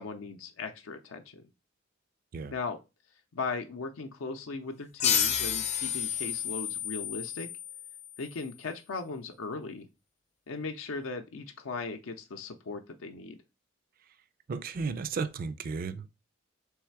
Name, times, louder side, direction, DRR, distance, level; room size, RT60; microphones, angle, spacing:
voice 1, 0.0-1.5 2.5-2.8 3.3-7.5 8.2-9.9 10.5-13.4, left 4 dB, 80° left, 0.5 m, -38 dB
sound 1, 5.0-8.2, left 8 dB, 35° left, 0.5 m, -30 dB
voice 2, 14.5-16.1, right 4 dB, 45° right, 0.4 m, -34 dB
3.4 x 3.2 x 4.5 m
head